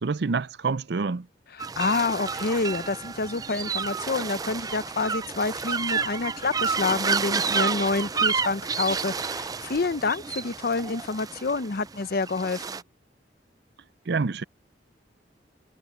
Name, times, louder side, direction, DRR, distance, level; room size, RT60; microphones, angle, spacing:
voice 1, 0.0-1.3 14.1-14.4, right 4 dB, 65° right, 0.6 m, -27 dB
voice 2, 1.5-12.8, left 3 dB, 60° left, 0.7 m, -28 dB
sound 1, 1.6-12.8, right 5 dB, 20° right, 0.4 m, -30 dB
head